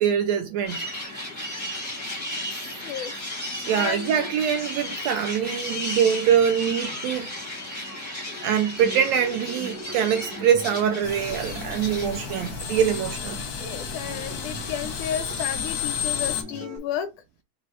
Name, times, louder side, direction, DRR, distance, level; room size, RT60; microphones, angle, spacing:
voice 1, 0.0-0.8 3.6-7.3 8.4-13.4, right 8 dB, 80° right, 1.6 m, -24 dB
sound 1, 0.6-12.5, left 1 dB, 20° left, 0.4 m, -34 dB
voice 2, 2.8-3.2 3.7-4.3 5.9-6.0 7.9-8.0 13.6-17.1, left 9 dB, 80° left, 2.2 m, -32 dB
Acoustic guitar, 8.8-16.8, right 2 dB, 60° right, 0.9 m, -41 dB
sound 2, 11.0-16.4, left 7 dB, 60° left, 1.1 m, -32 dB
5.1 x 2.1 x 4.8 m
omnidirectional pair, 3.5 m